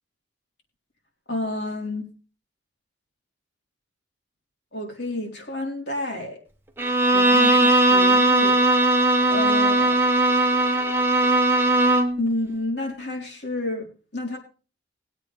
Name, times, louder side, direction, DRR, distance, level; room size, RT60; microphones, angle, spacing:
voice 1, 1.3-2.1 4.7-6.4 7.1-8.9 9.3-10.0 12.2-14.4, left 2 dB, 60° left, 1 dB, 4.0 m, -30 dB
Bowed string instrument, 6.8-12.2, right 2 dB, 10° right, 1.2 m, -19 dB
20.5 x 8.2 x 3.4 m, 0.35 s
head